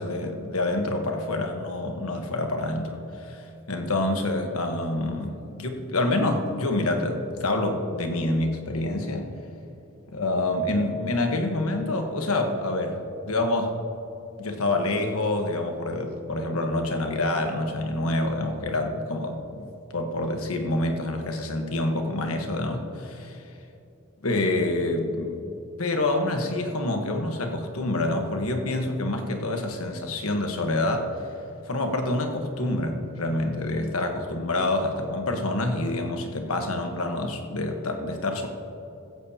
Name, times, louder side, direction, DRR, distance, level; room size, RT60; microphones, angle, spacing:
voice 1, 0.0-9.3 10.1-13.8 14.4-23.6 24.2-25.4 25.8-31.3 31.6-38.5, left 2 dB, 75° left, 4 dB, 1.3 m, -27 dB
16.0 x 14.5 x 2.9 m, 2.8 s
head